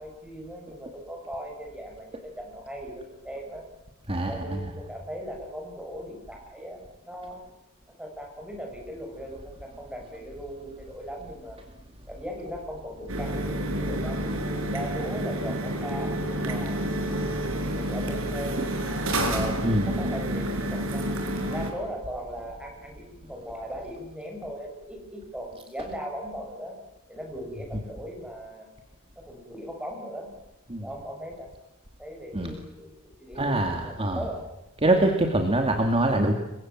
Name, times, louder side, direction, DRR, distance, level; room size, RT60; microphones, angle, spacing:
voice 1, 0.0-3.7 4.3-7.4 8.0-11.6 12.1-16.9 17.5-18.7 19.3-21.1 21.5-26.8 27.1-28.7 29.2-30.3 30.8-31.5 32.0-32.9 33.2-34.5, equal, 5° right, 1 dB, 7.8 m, -38 dB
voice 2, 4.1-4.7 19.6-20.0 30.7-30.8 32.3-32.5 33.4-34.2 34.8-36.3, right 1 dB, 25° right, 4 dB, 2.3 m, -24 dB
sound 1, 13.1-21.7, right 1 dB, 70° right, 5.8 m, -29 dB
29.0 x 24.0 x 7.6 m, 0.98 s
head